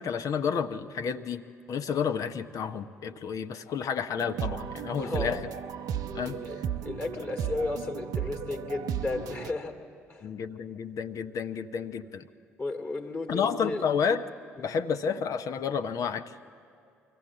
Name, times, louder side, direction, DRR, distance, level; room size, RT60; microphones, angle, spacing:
voice 1, 0.0-5.4 6.1-6.4 10.2-12.3 13.3-14.2 14.6-16.3, left 6 dB, 50° left, 9 dB, 0.8 m, -30 dB
sound 1, 4.2-9.5, right 8 dB, 55° right, 0.7 m, -35 dB
voice 2, 5.0-5.4 6.2-9.8 10.1-10.3 12.6-13.9 14.6-14.7, left 3 dB, 30° left, 3 dB, 2.5 m, -34 dB
24.0 x 15.5 x 7.6 m, 2.4 s
figure-of-eight pair, 50°, 7 cm